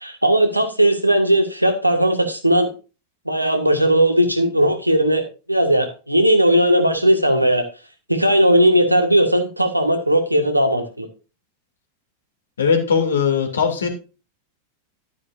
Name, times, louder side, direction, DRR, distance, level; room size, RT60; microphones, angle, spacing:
voice 1, 0.0-2.7 3.3-5.2 5.5-7.6 8.1-11.1, right 1 dB, 90° right, 1.7 m, -17 dB
voice 2, 12.6-13.9, left 6 dB, 70° left, 2.6 m, -19 dB
12.0 x 9.5 x 2.5 m
figure-of-eight pair, 90°, 0 cm